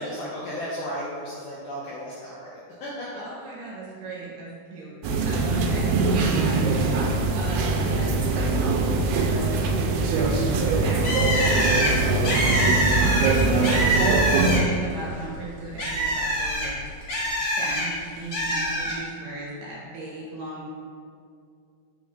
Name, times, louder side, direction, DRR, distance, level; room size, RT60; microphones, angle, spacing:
voice 1, 0.0-3.2 7.7-8.1 13.4-13.8, equal, 80° left, -6 dB, 1.8 m, -35 dB
voice 2, 3.1-4.9 5.3-6.9 7.3-8.1 8.4-13.2 13.6-14.1 14.4-16.8 17.6-20.7, right 2 dB, 70° right, -5 dB, 2.3 m, -38 dB
sound 1, 5.0-14.6, right 3 dB, 90° right, 2.5 m, -22 dB
Bird, 11.0-14.9 15.2-17.9 18.3-19.0, equal, 50° left, 1.4 m, -25 dB
8.6 x 4.6 x 2.4 m, 2.4 s
omnidirectional pair, 4.4 m